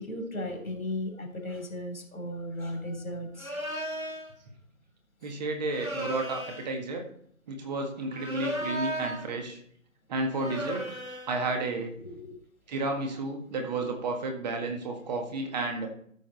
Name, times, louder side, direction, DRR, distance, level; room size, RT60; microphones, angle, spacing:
voice 1, 0.0-4.1 8.6-8.7 12.0-12.4, left 1 dB, 85° left, 2 dB, 3.2 m, -36 dB
sound 1, 3.4-4.3 5.7-6.7 8.1-9.3 10.3-11.4, right 1 dB, 85° right, 2.8 m, -35 dB
voice 2, 5.2-7.0 7.5-9.6 10.1-10.8 11.3-11.9 12.7-15.9, right 2 dB, 30° right, 3 dB, 1.7 m, -32 dB
13.0 x 6.5 x 4.0 m, 0.63 s
figure-of-eight pair, 140°, 41 cm